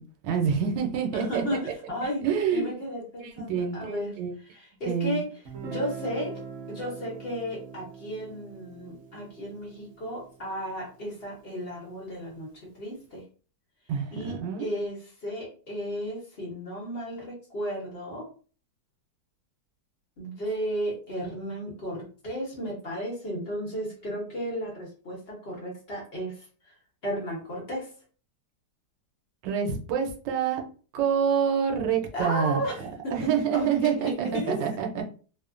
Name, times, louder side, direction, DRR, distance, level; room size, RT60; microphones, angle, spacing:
voice 1, 0.0-1.4 2.2-2.7 3.2-4.4 4.8-5.3 13.9-14.7 29.4-30.6 30.9-32.6 33.1-35.1, right 7 dB, 85° right, 3 dB, 1.3 m, -27 dB
voice 2, 1.1-2.2 2.5-4.1 4.5-5.3 5.6-6.3 6.7-13.2 14.1-18.3 20.2-26.4 27.0-27.9 32.1-34.5, equal, 40° left, -3 dB, 1.0 m, -34 dB
Guitar, 5.5-11.2, right 5 dB, 60° right, 0.7 m, -43 dB
3.1 x 2.1 x 2.4 m, 0.39 s
omnidirectional pair, 1.9 m